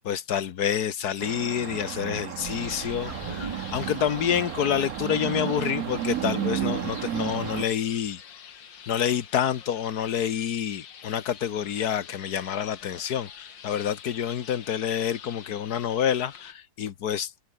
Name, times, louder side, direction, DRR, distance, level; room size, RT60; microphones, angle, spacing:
voice 1, 0.0-8.2 8.9-17.3, left 9 dB, 60° left, 1.5 m, -28 dB
sound 1, 1.2-7.6, right 11 dB, 60° right, 1.1 m, -32 dB
sound 2, 2.4-16.5, left 8 dB, 90° left, 2.3 m, -46 dB
sound 3, 3.0-7.6 8.0-8.1, right 4 dB, 30° right, 0.7 m, -43 dB
omnidirectional pair, 2.0 m